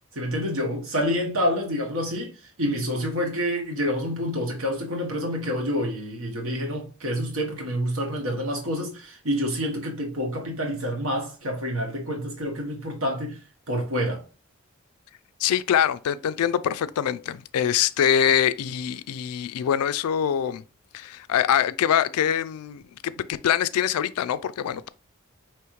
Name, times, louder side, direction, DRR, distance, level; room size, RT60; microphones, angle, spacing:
voice 1, 0.1-2.3 2.6-13.4 13.7-14.2, equal, 75° right, 1.2 m, -28 dB
voice 2, 15.4-20.6 20.9-24.9, left 9 dB, 85° left, 0.3 m, -24 dB
4.9 x 3.0 x 3.0 m
head